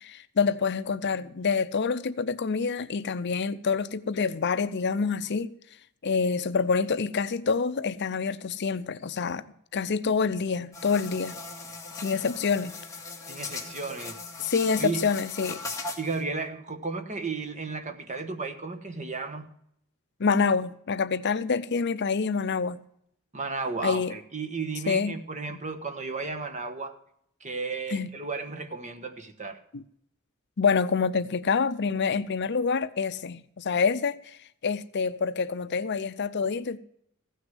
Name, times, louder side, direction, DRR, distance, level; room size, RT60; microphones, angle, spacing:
voice 1, 0.0-5.5 6.0-9.4 9.7-11.4 12.0-12.8 14.4-15.6 20.2-22.8 23.8-24.1 24.9-25.1 27.9-28.1 29.7-29.8 30.6-36.8, left 5 dB, 50° left, 0.6 m, -27 dB
sound 1, 10.7-16.2, left 3 dB, 15° left, 1.9 m, -39 dB
voice 2, 13.3-14.5 14.8-15.0 16.0-19.5 23.3-27.0 27.4-29.6, right 4 dB, 35° right, 1.3 m, -34 dB
15.5 x 6.5 x 8.9 m
head